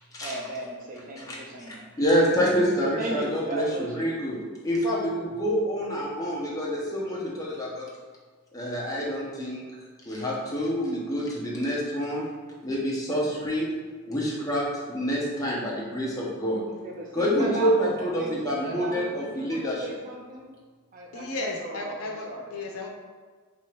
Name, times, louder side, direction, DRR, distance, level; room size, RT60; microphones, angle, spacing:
voice 1, 0.2-1.9 2.1-2.6 2.9-4.1 16.7-20.5 20.9-22.5, right 1 dB, 40° right, -1 dB, 0.6 m, -36 dB
voice 2, 2.0-4.4 4.6-7.9 8.5-9.6 10.0-12.3 12.6-13.7 14.1-16.6 17.1-19.9, equal, 15° left, -5 dB, 0.7 m, -27 dB
voice 3, 21.1-22.9, left 2 dB, 80° left, 1 dB, 0.6 m, -34 dB
3.1 x 2.9 x 4.5 m, 1.4 s
head